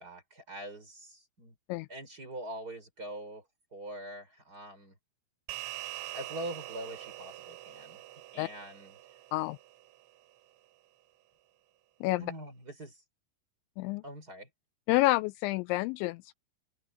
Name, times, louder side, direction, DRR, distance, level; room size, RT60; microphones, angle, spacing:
voice 1, 0.0-1.5 1.9-3.4 3.7-5.0 5.9-8.0 8.3-9.2 12.2-13.0 14.0-14.5, right 1 dB, 20° right, 6.3 m, -43 dB
sound 1, 5.5-10.1, right 16 dB, 90° right, 4.6 m, -44 dB
voice 2, 12.0-12.3 13.8-14.0 14.9-16.3, left 19 dB, 85° left, 2.8 m, -29 dB
open air
omnidirectional pair, 5.5 m